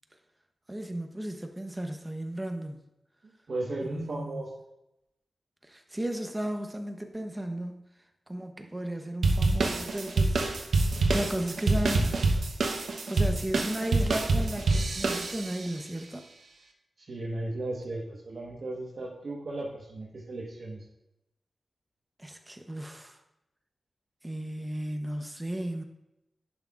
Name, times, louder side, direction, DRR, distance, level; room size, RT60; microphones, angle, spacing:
voice 1, 0.7-2.8 3.8-4.4 5.6-7.9 8.3-10.8 11.1-12.1 13.1-16.2 22.2-23.2 24.2-25.8, right 1 dB, 15° right, 5 dB, 0.8 m, -35 dB
voice 2, 3.2-4.5 17.0-20.8, right 2 dB, 60° right, -5 dB, 1.2 m, -36 dB
sound 1, 9.2-15.7, right 3 dB, 80° right, 0.9 m, -26 dB
11.0 x 5.9 x 2.4 m, 0.89 s
wide cardioid pair, 90°, 0 cm